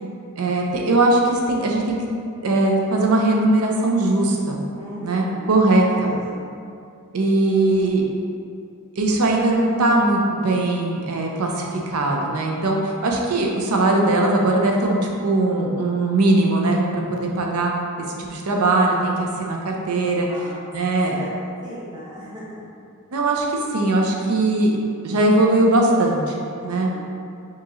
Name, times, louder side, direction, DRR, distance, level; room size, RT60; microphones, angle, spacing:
voice 1, 0.4-2.0 2.4-4.6 5.0-6.1 7.1-8.0 9.0-17.7 18.2-20.3 20.7-21.2 23.1-24.7 25.0-26.2 26.6-26.9, right 2 dB, 75° right, 0 dB, 0.6 m, -20 dB
voice 2, 4.7-5.5 6.0-6.5 20.3-21.4 21.6-22.6 26.6-27.0, equal, 20° right, -7 dB, 0.6 m, -38 dB
4.5 x 2.9 x 3.0 m, 2.4 s
head